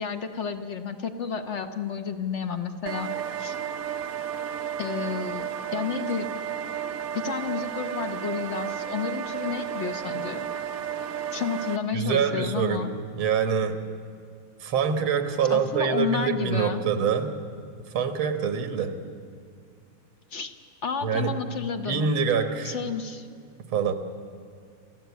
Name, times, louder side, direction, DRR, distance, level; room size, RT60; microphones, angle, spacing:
voice 1, 0.0-3.6 4.8-6.3 7.1-10.5 11.3-12.9 15.5-16.8 20.3-20.5 20.8-22.1 22.6-23.3, left 6 dB, 45° left, 8 dB, 1.0 m, -31 dB
sound 1, 2.9-11.8, right 9 dB, 60° right, 0.9 m, -32 dB
voice 2, 11.9-12.9 13.1-13.8 14.6-17.3 17.9-19.0 21.0-21.4 21.9-22.8 23.7-23.9, right 6 dB, 85° right, 8 dB, 2.2 m, -25 dB
28.0 x 14.5 x 8.3 m, 2.3 s
omnidirectional pair, 2.2 m